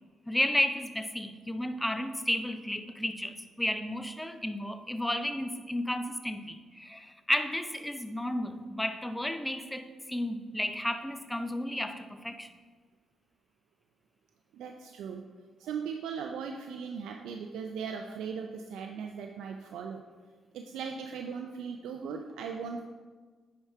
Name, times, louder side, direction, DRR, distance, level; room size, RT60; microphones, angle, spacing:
voice 1, 0.3-12.5, left 1 dB, 10° left, 9 dB, 0.6 m, -32 dB
voice 2, 14.5-15.2 15.6-20.0 20.5-22.8, right 6 dB, 85° right, 4 dB, 0.4 m, -38 dB
9.9 x 4.7 x 3.5 m, 1.4 s
cardioid pair, 75°, 0 cm